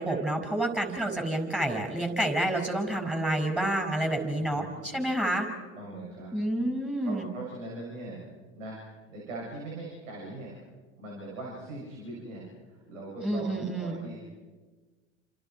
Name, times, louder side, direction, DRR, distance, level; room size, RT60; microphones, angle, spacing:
voice 1, 0.0-5.5 6.3-7.3 13.2-14.0, right 1 dB, 5° right, 5 dB, 6.1 m, -29 dB
voice 2, 4.4-5.2 5.8-6.3 7.0-8.3 8.6-8.8 9.1-10.5 11.0-14.2, right 2 dB, 80° right, -3 dB, 7.3 m, -41 dB
29.5 x 27.5 x 4.7 m, 1.3 s
hypercardioid pair, 85°, 38 cm